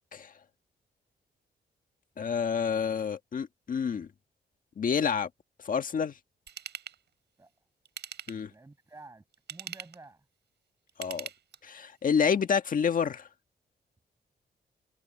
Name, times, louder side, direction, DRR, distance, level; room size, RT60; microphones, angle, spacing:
voice 1, 2.2-4.1 4.8-5.3 5.6-6.1 8.3-8.5 11.0-11.3 11.6-13.3, left 6 dB, 50° left, 1.5 m, -28 dB
Ratchet pawl / Tools, 6.5-7.0 7.8-8.5 9.3-10.0 10.9-11.8 12.3-12.4, right 9 dB, 80° right, 5.8 m, -42 dB
voice 2, 8.5-10.3, right 2 dB, 20° right, 7.2 m, -51 dB
wide cardioid pair, 120°, 17 cm